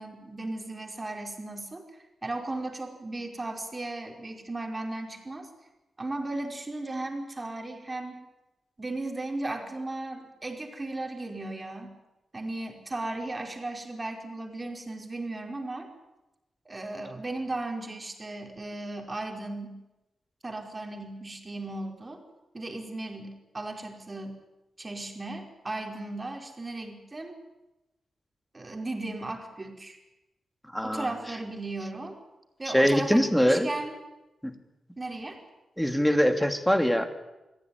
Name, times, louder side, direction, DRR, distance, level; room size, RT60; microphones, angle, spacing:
voice 1, 0.0-1.9 2.2-5.5 6.0-8.2 8.8-11.9 12.3-15.9 16.6-19.8 20.4-22.2 22.5-24.4 24.8-27.4 28.5-30.0 30.8-32.2 32.6-33.9 35.0-35.4, right 2 dB, 30° right, 3 dB, 5.1 m, -36 dB
voice 2, 30.7-31.1 32.7-33.7 34.4-34.6 35.8-37.1, equal, 5° left, 7 dB, 3.1 m, -23 dB
22.5 x 15.5 x 9.9 m, 0.99 s
supercardioid pair, 45°, 0 cm